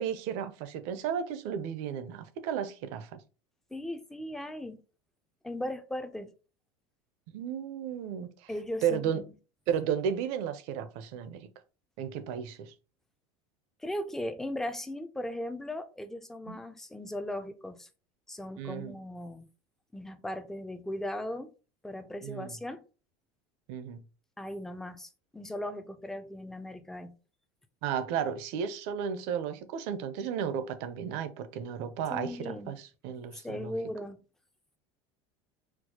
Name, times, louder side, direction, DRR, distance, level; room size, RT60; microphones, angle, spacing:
voice 1, 0.0-3.1 7.3-8.5 8.8-9.2 9.7-11.5 12.0-12.7 16.5-16.6 18.6-19.0 22.2-22.6 23.7-24.0 27.8-33.7, right 8 dB, 60° right, 0.6 m, -33 dB
voice 2, 3.7-4.8 5.4-6.3 8.5-9.2 13.8-17.9 18.3-19.5 19.9-21.5 21.8-22.8 24.4-27.2 32.1-32.8 33.4-34.2, left 1 dB, 5° left, 0.3 m, -38 dB
4.4 x 2.1 x 2.8 m
supercardioid pair, 145°, 13 cm